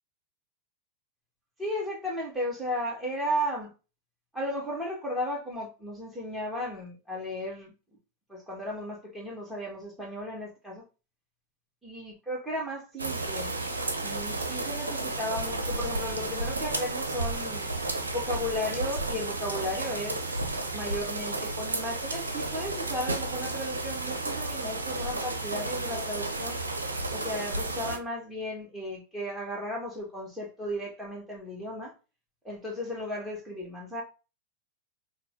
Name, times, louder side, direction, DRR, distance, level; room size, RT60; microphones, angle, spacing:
voice 1, 1.6-3.7 4.3-7.7 8.3-10.8 11.8-13.5 14.0-17.7 18.1-20.3 20.7-26.6 27.1-31.9 32.4-34.0, equal, 5° right, 2.2 m, -35 dB
sound 1, 13.0-28.0, right 2 dB, 75° right, 0.9 m, -32 dB
5.7 x 2.4 x 3.8 m
figure-of-eight pair, 90°, 0 cm